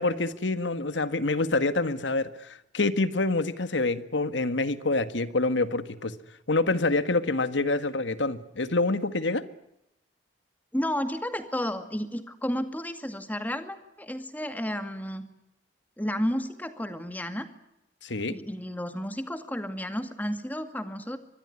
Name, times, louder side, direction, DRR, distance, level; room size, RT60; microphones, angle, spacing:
voice 1, 0.0-6.2 6.5-9.4 18.0-18.3, left 2 dB, 85° left, 12 dB, 1.7 m, -26 dB
voice 2, 10.7-15.3 16.0-17.5 18.3-21.2, equal, 10° left, 9 dB, 2.2 m, -32 dB
24.5 x 21.0 x 9.7 m, 0.84 s
head